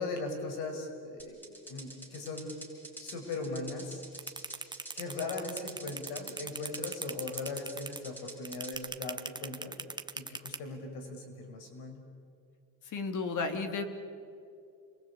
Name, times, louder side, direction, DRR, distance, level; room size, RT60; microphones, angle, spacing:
voice 1, 0.0-1.4 1.7-2.5 3.0-4.0 4.9-9.8 10.1-12.0, left 3 dB, 75° left, 5 dB, 5.8 m, -39 dB
sound 1, 1.2-8.7, right 2 dB, 5° left, 6.0 m, -47 dB
sound 2, 4.2-10.6, right 3 dB, 10° right, 1.1 m, -38 dB
voice 2, 12.8-13.8, left 4 dB, 50° left, 7 dB, 2.8 m, -33 dB
29.5 x 23.0 x 8.5 m, 2.4 s
cardioid pair, 125°, 40 cm